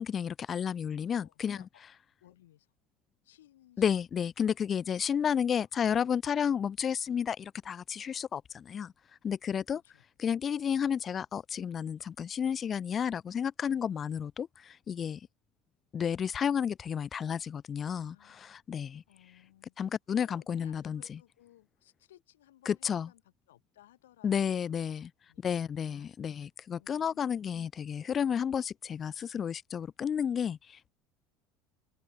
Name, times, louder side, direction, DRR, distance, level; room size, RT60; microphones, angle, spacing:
voice 1, 0.0-1.6 3.8-8.9 9.2-9.8 10.2-15.2 15.9-18.1 18.4-19.0 19.8-21.0 22.7-23.1 24.2-25.1 25.4-30.9, left 8 dB, 35° left, 0.3 m, -31 dB
voice 2, 1.1-1.8 2.2-2.7 3.2-3.9 5.3-6.0 9.7-10.0 17.8-18.4 19.1-19.8 20.1-25.0 25.3-25.5 25.8-26.1 26.7-27.4, left 13 dB, 90° left, 7.5 m, -61 dB
hypercardioid pair, 85°, 0 cm